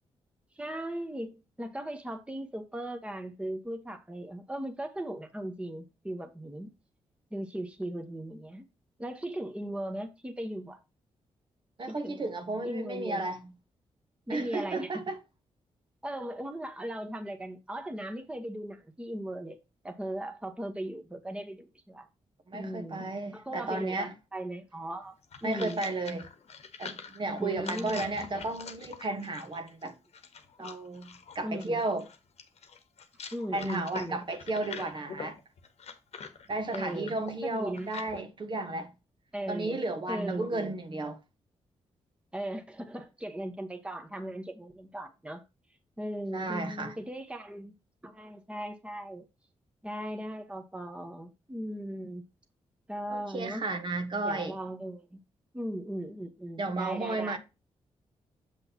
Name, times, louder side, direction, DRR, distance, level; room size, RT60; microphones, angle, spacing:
voice 1, 0.6-6.7 7.3-8.6 9.0-10.8 11.9-12.2 12.6-13.3 14.3-15.0 16.0-19.6 19.8-22.1 22.5-25.1 25.4-25.8 27.4-28.1 30.6-30.7 31.4-31.8 33.3-34.2 36.7-37.9 39.3-39.8 40.1-40.7 42.3-45.4 46.0-47.7 48.0-49.2 49.8-52.2 52.9-53.6 54.2-55.2 55.5-57.4, right 1 dB, 10° right, 1.2 m, -38 dB
voice 2, 11.8-13.4 14.3-15.2 22.5-24.1 25.4-26.3 26.8-30.0 30.6-32.1 33.5-35.4 36.5-38.9 39.5-41.2 46.3-46.9 53.1-54.6 56.6-57.4, right 2 dB, 45° right, 1.3 m, -33 dB
sound 1, 25.0-38.2, left 6 dB, 70° left, 1.2 m, -45 dB
7.2 x 6.3 x 2.9 m
cardioid pair, 75°, 11 cm